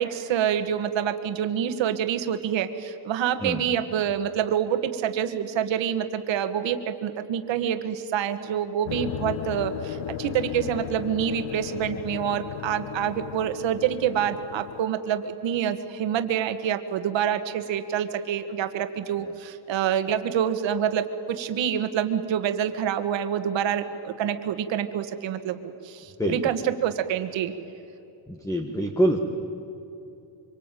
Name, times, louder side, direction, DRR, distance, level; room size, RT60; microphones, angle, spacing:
voice 1, 0.0-27.5, right 9 dB, 65° right, 9 dB, 1.8 m, -27 dB
voice 2, 3.4-3.7 19.2-19.3 26.2-26.5 28.3-29.2, right 1 dB, 5° left, 5 dB, 1.3 m, -26 dB
sound 1, 8.8-14.9, left 15 dB, 70° left, 0.6 m, -36 dB
25.5 x 25.0 x 9.2 m, 2.9 s
cardioid pair, 170°, 47 cm